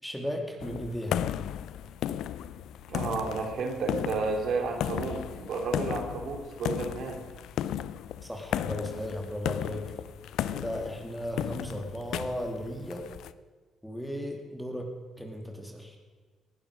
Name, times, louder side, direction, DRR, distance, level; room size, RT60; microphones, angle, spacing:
voice 1, 0.0-1.2 8.2-9.8 10.5-13.0 13.8-14.9 15.2-16.0, equal, ahead, 2 dB, 2.9 m, -35 dB
sound 1, 0.6-13.3, left 11 dB, 80° left, 0.5 m, -35 dB
voice 2, 2.9-7.2, right 4 dB, 70° right, 3 dB, 2.9 m, -32 dB
19.5 x 11.5 x 5.1 m, 1.4 s
cardioid pair, 90°, 0 cm